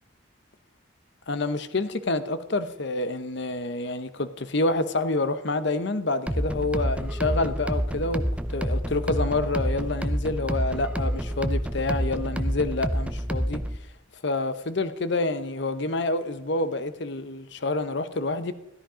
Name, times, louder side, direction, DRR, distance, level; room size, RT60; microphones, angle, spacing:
voice 1, 1.3-8.2 8.5-13.6 14.2-18.5, left 2 dB, 55° left, 0.8 m, -28 dB
sound 1, 6.3-13.8, equal, 5° right, 0.5 m, -28 dB
14.0 x 13.0 x 5.0 m
head